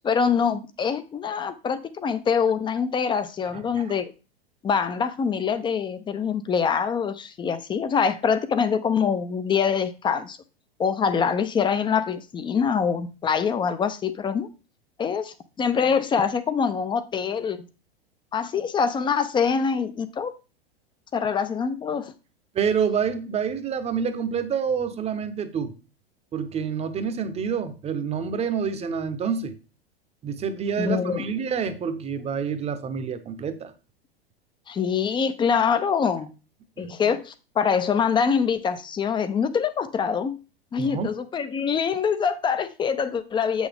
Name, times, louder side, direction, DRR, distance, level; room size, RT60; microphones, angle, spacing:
voice 1, 0.0-4.1 4.6-10.4 10.8-14.5 15.0-17.6 18.3-20.3 21.1-22.1 30.8-31.3 34.7-36.3 36.8-40.4 40.7-43.7, left 6 dB, 15° left, 0.6 m, -24 dB
voice 2, 22.5-25.7 26.3-29.5 30.2-33.7 36.8-36.9 40.8-41.1, right 6 dB, 20° right, 0.9 m, -27 dB
7.7 x 6.2 x 3.5 m
figure-of-eight pair, 95°, 30 cm